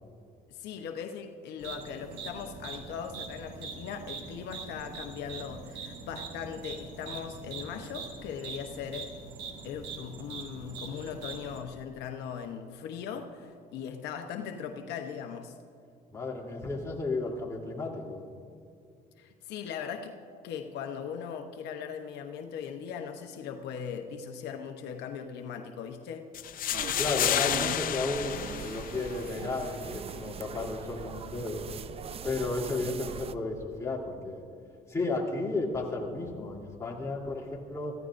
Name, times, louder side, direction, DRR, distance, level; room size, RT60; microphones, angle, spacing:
voice 1, 0.5-9.1 9.6-15.6 19.2-26.3, left 7 dB, 80° left, 5 dB, 0.9 m, -39 dB
sound 1, 1.6-11.6, right 5 dB, 90° right, 2.0 m, -43 dB
voice 2, 16.1-18.2 26.9-31.6 32.2-34.4 34.9-37.9, left 3 dB, 15° left, -3 dB, 3.2 m, -33 dB
sound 2, 26.3-29.4, left 11 dB, 55° left, 0.6 m, -31 dB
sound 3, 26.7-33.3, right 7 dB, 35° right, 0.5 m, -41 dB
24.5 x 15.0 x 2.6 m, 2.3 s
cardioid pair, 110°, 17 cm